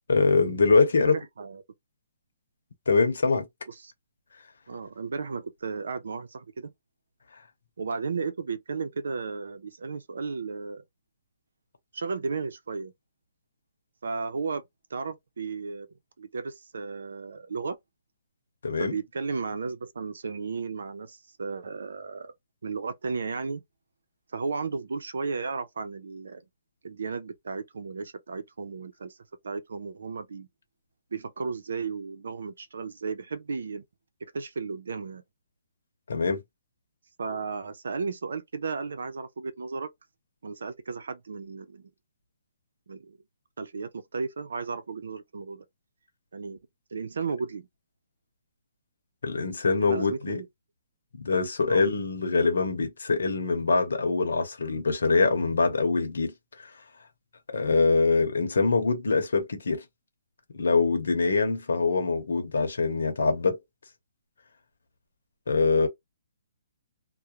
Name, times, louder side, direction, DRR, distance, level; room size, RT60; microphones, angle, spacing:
voice 1, 0.1-1.1 2.9-3.5 18.6-19.0 36.1-36.4 49.2-50.4 51.2-56.3 57.5-59.8 60.5-63.6 65.5-65.9, left 4 dB, 85° left, 0.8 m, -24 dB
voice 2, 0.9-1.6 3.7-3.9 4.7-6.7 7.8-10.8 11.9-12.9 14.0-14.6 14.9-15.9 16.2-17.8 18.8-22.3 22.6-23.6 24.3-26.4 26.8-29.2 29.4-30.5 31.1-33.8 34.2-35.2 37.2-39.9 40.4-41.8 42.9-43.2 43.6-45.6 46.3-46.6 46.9-47.7 49.8-50.5 51.7-51.8, right 4 dB, 85° right, 0.6 m, -34 dB
2.3 x 2.1 x 2.9 m
hypercardioid pair, 165°, 0 cm